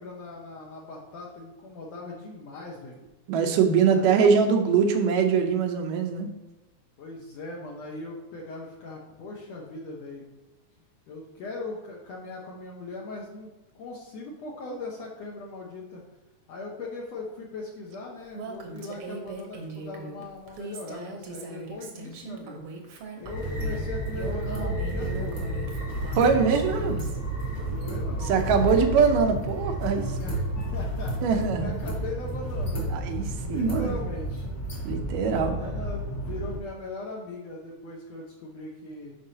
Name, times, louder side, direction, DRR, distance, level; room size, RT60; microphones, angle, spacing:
voice 1, 0.0-3.0 3.9-4.1 7.0-10.3 11.1-16.0 16.5-22.7 23.2-25.5 27.7-28.8 30.0-34.5 35.4-39.2, left 2 dB, 65° left, -3 dB, 1.9 m, -39 dB
voice 2, 3.3-6.3 26.1-27.0 28.3-30.2 31.2-31.8 32.9-33.9 34.8-35.5, right 6 dB, 90° right, 5 dB, 2.4 m, -23 dB
Female speech woman speaking, 18.3-27.2, right 3 dB, 65° right, 1.5 m, -40 dB
sound 1, 23.2-36.6, right 1 dB, 40° left, 1.4 m, -31 dB
11.0 x 4.8 x 2.8 m, 1.1 s
omnidirectional pair, 3.7 m